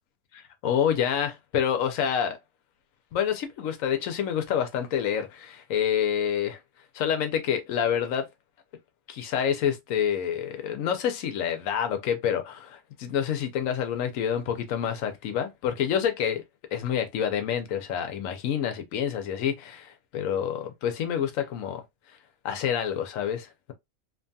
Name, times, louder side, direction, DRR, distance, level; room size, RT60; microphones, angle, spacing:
voice 1, 0.3-2.4 3.1-6.6 6.9-8.3 9.1-16.4 16.7-21.8 22.1-22.2 22.4-23.7, left 8 dB, 85° left, 1.1 m, -28 dB
2.9 x 2.3 x 2.6 m
omnidirectional pair, 1.4 m